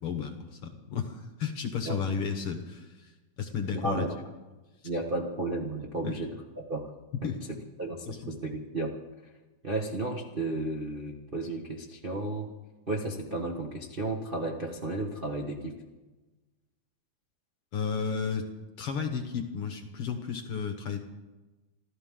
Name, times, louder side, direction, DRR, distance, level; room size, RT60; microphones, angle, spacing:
voice 1, 0.0-3.1 3.4-4.0 6.0-6.2 7.2-7.4 8.1-8.2 17.7-18.5 18.8-21.0, left 6 dB, 60° left, 6 dB, 1.7 m, -33 dB
voice 2, 3.7-4.2 4.8-6.9 7.2-7.3 7.8-8.9 9.2-9.3 9.6-12.5 12.9-15.8, right 2 dB, 60° right, -1 dB, 0.5 m, -33 dB
27.5 x 14.0 x 3.8 m, 1.2 s
omnidirectional pair, 3.7 m